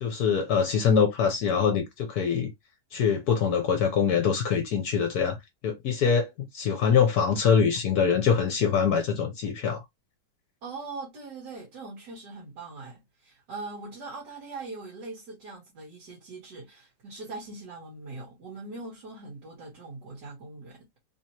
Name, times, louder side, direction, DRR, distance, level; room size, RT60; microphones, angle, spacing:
voice 1, 0.0-2.5 2.9-5.4 5.6-9.8, left 6 dB, 65° left, 1.1 m, -24 dB
voice 2, 10.6-21.0, right 3 dB, 70° right, 1.9 m, -41 dB
3.7 x 2.9 x 2.8 m
omnidirectional pair, 1.9 m